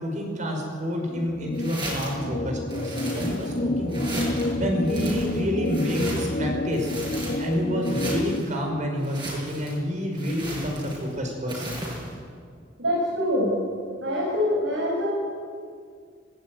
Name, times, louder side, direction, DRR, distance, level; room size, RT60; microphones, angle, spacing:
voice 1, 0.0-6.9 7.4-11.8, equal, 40° right, 2 dB, 5.0 m, -29 dB
sound 1, 1.1-8.4, left 2 dB, 50° left, 0.9 m, -29 dB
sound 2, 1.5-2.2 2.7-3.6 3.9-4.5 4.9-6.4 6.7-7.5 7.8-8.5 9.0-9.8 10.1-11.1 11.5-12.1, right 1 dB, 25° right, 7.2 m, -35 dB
voice 2, 12.8-13.6 14.0-15.1, left 1 dB, 80° right, -4 dB, 5.7 m, -24 dB
19.0 x 19.0 x 9.2 m, 2.1 s
head